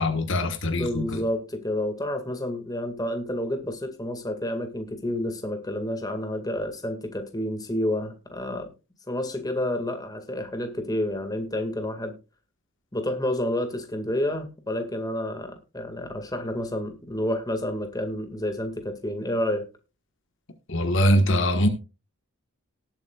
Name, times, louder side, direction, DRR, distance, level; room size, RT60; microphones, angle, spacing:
voice 1, 0.0-1.2 20.7-21.7, equal, 55° left, 1.4 m, -22 dB
voice 2, 0.8-8.7 9.1-12.1 12.9-19.6, left 1 dB, 15° left, 1.9 m, -29 dB
18.5 x 8.4 x 2.4 m
head